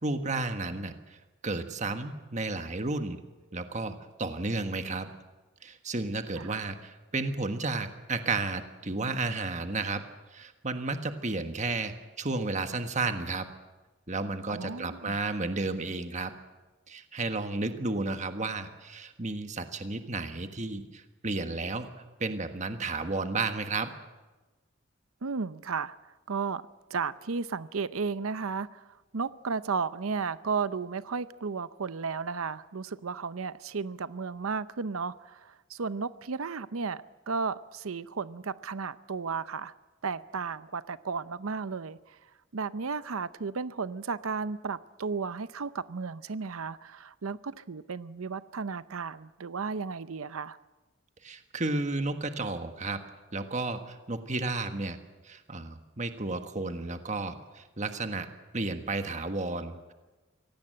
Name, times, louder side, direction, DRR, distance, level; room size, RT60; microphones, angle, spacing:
voice 1, 0.0-1.2 1.4-3.2 3.5-5.1 5.6-10.0 10.3-13.5 14.1-16.3 16.9-21.9 22.2-23.9 51.2-53.0 53.3-55.0 55.2-58.3 58.5-59.9, right 3 dB, 35° right, 7 dB, 1.5 m, -32 dB
voice 2, 14.5-15.2 25.2-26.0 26.3-26.6 26.9-28.8 29.1-39.7 40.0-42.2 42.5-50.6, right 5 dB, 90° right, 15 dB, 0.7 m, -34 dB
24.5 x 18.0 x 7.7 m, 1.2 s
head